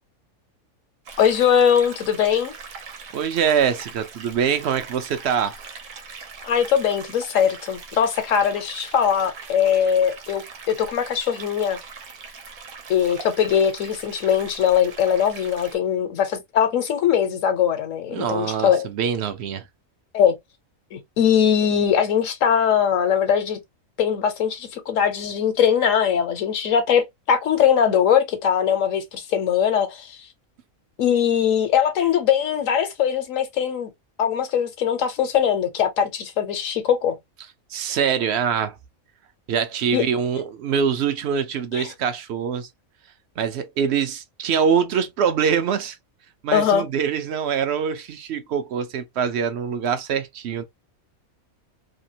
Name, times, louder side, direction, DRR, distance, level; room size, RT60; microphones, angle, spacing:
sound 1, 1.0-15.8, right 5 dB, 90° right, 1.2 m, -41 dB
voice 1, 1.2-2.5 6.4-11.8 12.9-18.9 20.1-20.3 20.9-23.6 24.0-30.2 31.0-33.9 34.2-37.2 39.9-40.0 41.7-41.9 46.5-46.8, left 8 dB, 70° left, 1.1 m, -21 dB
voice 2, 3.1-5.6 18.1-19.6 37.7-38.8 39.5-42.7 43.4-46.0 46.4-50.6, right 7 dB, 60° right, 0.7 m, -24 dB
2.9 x 2.4 x 2.7 m
omnidirectional pair, 1.5 m